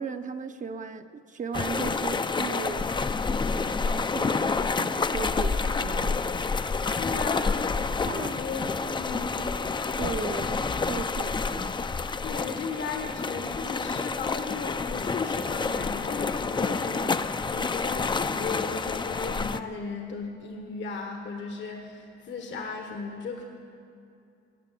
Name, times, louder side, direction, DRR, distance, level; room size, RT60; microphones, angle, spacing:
voice 1, 0.0-2.9 3.5-6.2 8.1-8.3 9.4-9.5 10.0-11.7, right 5 dB, 40° right, 8 dB, 0.7 m, -36 dB
sound 1, 1.5-19.6, left 4 dB, 25° left, 0.5 m, -28 dB
voice 2, 7.0-7.7 7.9-9.5 12.2-23.4, left 4 dB, 70° left, 3 dB, 1.5 m, -36 dB
18.5 x 6.7 x 9.2 m, 2.6 s
cardioid pair, 90°, 20 cm